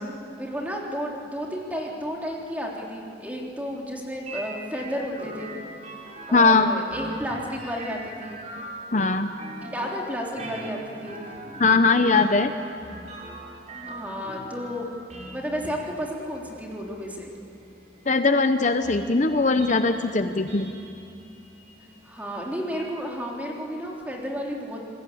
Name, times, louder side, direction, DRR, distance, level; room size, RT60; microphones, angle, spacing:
voice 1, 0.4-5.5 6.3-8.4 9.6-11.2 13.9-14.9 15.3-17.3 22.0-24.8, equal, 10° right, -2 dB, 3.5 m, -32 dB
sound 1, 4.3-22.9, right 1 dB, 40° right, 4.3 m, -42 dB
voice 2, 6.3-6.7 8.9-9.3 11.6-12.5 18.1-20.7, left 3 dB, 40° left, 8 dB, 0.8 m, -20 dB
27.5 x 21.0 x 8.6 m, 2.5 s
head